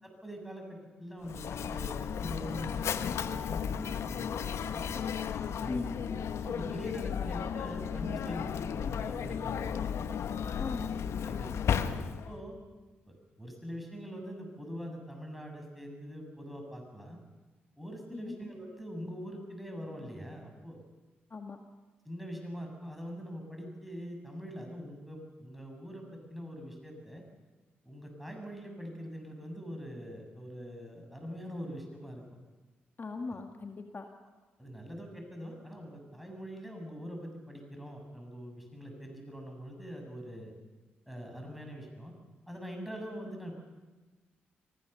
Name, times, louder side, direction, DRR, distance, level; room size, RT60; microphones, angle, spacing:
voice 1, 0.0-4.9 5.6-5.9 6.3-9.7 10.6-10.8 11.2-12.6 13.1-17.2 17.8-20.8 22.1-27.2 27.8-32.2 34.6-40.5 41.1-42.1 42.5-43.6, equal, ahead, 2 dB, 7.6 m, -43 dB
Mechanisms, 1.2-12.4, left 7 dB, 65° left, 1.0 m, -34 dB
voice 2, 10.6-10.9 18.1-18.4 21.3-21.6 33.0-34.1, left 4 dB, 40° left, 4 dB, 1.9 m, -38 dB
24.5 x 15.5 x 7.0 m, 1.3 s
hypercardioid pair, 45°, 5 cm